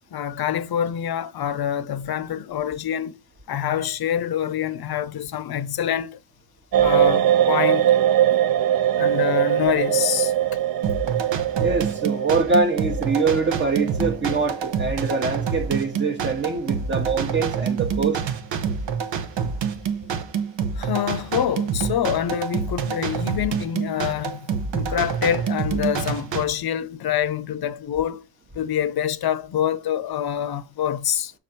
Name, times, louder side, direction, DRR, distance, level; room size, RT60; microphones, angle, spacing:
voice 1, 0.1-3.2 3.5-6.2 6.8-7.9 9.0-10.3 20.8-24.5 24.7-28.2 28.5-31.3, left 10 dB, 60° left, 0.6 m, -26 dB
sound 1, 6.7-16.7 16.9-17.1, right 11 dB, 50° right, 0.5 m, -22 dB
sound 2, 10.8-26.4, right 6 dB, 80° right, 1.0 m, -27 dB
voice 2, 11.6-18.2, right 4 dB, 25° right, 1.0 m, -24 dB
6.7 x 3.8 x 4.3 m
wide cardioid pair, 130°, 44 cm